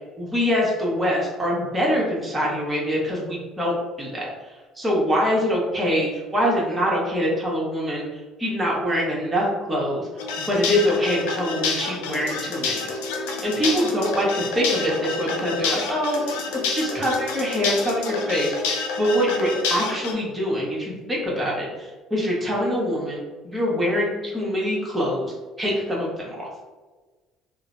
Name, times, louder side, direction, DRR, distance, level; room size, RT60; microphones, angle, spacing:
voice 1, 0.2-4.3 4.7-10.1 10.4-12.9 13.4-16.4 16.7-18.5 19.0-26.5, equal, 15° right, -4 dB, 1.1 m, -24 dB
sound 1, 10.2-20.1, left 4 dB, 80° left, 0.4 m, -28 dB
3.1 x 2.0 x 2.6 m, 1.3 s
hypercardioid pair, 65°, 0 cm